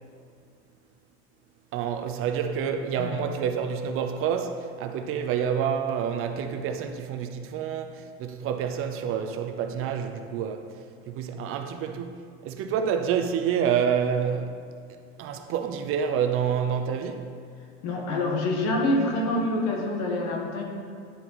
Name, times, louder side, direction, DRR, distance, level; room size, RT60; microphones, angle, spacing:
voice 1, 1.7-10.8 11.1-14.6 15.2-17.3, right 7 dB, 45° right, 6 dB, 0.6 m, -28 dB
voice 2, 17.8-20.6, left 2 dB, 65° left, 0 dB, 1.5 m, -26 dB
9.8 x 4.4 x 4.1 m, 2.2 s
supercardioid pair, 130°, 31 cm